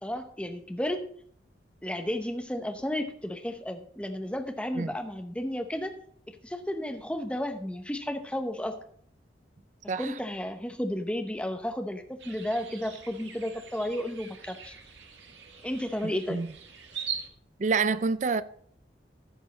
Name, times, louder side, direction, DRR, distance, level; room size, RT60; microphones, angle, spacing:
voice 1, 0.0-1.0 1.8-5.9 6.3-8.8 10.0-14.7 15.6-16.4, left 1 dB, 5° left, 0.8 m, -33 dB
sound 1, 12.2-17.3, right 7 dB, 80° right, 1.5 m, -42 dB
voice 2, 16.0-16.5 17.6-18.4, right 4 dB, 40° right, 0.4 m, -28 dB
14.5 x 5.4 x 4.1 m
head